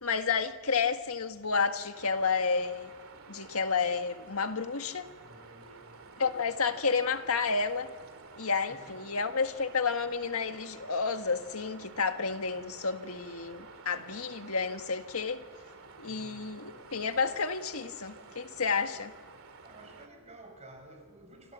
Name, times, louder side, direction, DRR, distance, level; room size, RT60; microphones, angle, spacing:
voice 1, 0.0-2.9 3.3-5.1 6.2-7.9 8.4-15.4 16.0-19.1, left 5 dB, 80° left, 1.7 m, -31 dB
sound 1, 1.9-20.1, right 4 dB, 70° right, 2.5 m, -51 dB
voice 2, 5.0-6.1 8.7-9.0 16.0-16.4 19.6-21.5, right 1 dB, 30° right, 6.4 m, -53 dB
28.5 x 25.5 x 7.5 m
head